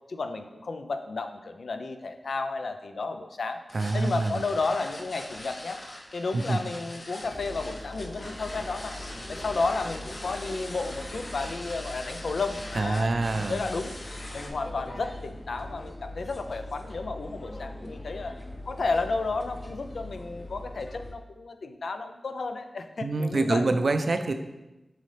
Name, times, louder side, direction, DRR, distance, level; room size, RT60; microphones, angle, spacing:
voice 1, 0.1-3.6 3.9-5.8 6.1-8.9 9.3-13.9 14.3-18.3 18.7-23.7, left 3 dB, 90° left, 7 dB, 0.5 m, -32 dB
sound 1, 3.7-14.5, left 1 dB, 60° left, 1.2 m, -42 dB
voice 2, 3.7-4.4 6.3-6.6 12.8-13.6 23.0-24.3, right 3 dB, 70° right, 8 dB, 0.5 m, -26 dB
sound 2, 7.2-21.1, left 1 dB, 45° left, 0.8 m, -42 dB
7.5 x 4.1 x 3.3 m, 1.0 s
cardioid pair, 50°, 0 cm